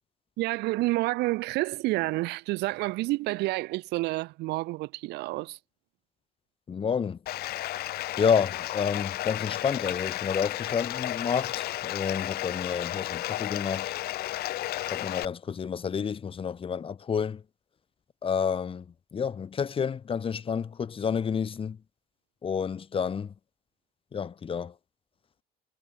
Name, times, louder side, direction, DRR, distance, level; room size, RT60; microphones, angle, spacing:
voice 1, 0.4-5.6, right 20 dB, 80° right, 0.4 m, -29 dB
voice 2, 6.7-7.2 8.2-13.9 14.9-17.4 18.2-18.9 19.1-21.8 22.4-23.3 24.1-24.7, left 6 dB, 30° left, 1.0 m, -29 dB
Bathtub (filling or washing), 7.3-15.3, left 15 dB, 70° left, 0.6 m, -33 dB
cardioid pair, 110°, 17 cm